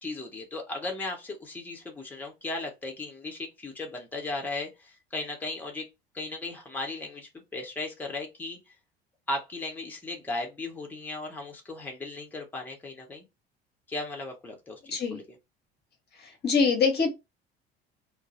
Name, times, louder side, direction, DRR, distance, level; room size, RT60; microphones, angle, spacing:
voice 1, 0.0-5.9 6.1-8.6 9.3-13.2 13.9-15.4, left 2 dB, 5° left, 0.8 m, -36 dB
voice 2, 16.4-17.1, left 5 dB, 35° left, 0.8 m, -23 dB
2.1 x 2.1 x 2.8 m
figure-of-eight pair, 65°, 30 cm